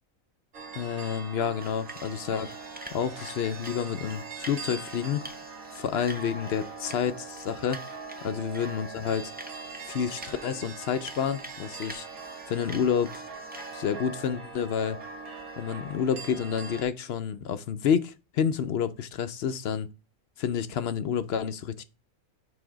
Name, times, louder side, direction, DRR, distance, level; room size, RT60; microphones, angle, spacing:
sound 1, 0.5-16.8, right 4 dB, 80° right, 1.7 m, -42 dB
voice 1, 0.8-2.5 2.9-5.2 5.7-7.8 8.2-9.3 9.9-12.1 12.5-13.2 13.7-15.0 15.6-19.9 20.4-21.8, left 7 dB, 65° left, 0.7 m, -29 dB
sound 2, 1.6-16.5, right 1 dB, 15° right, 0.3 m, -48 dB
7.0 x 3.3 x 4.9 m
omnidirectional pair, 1.5 m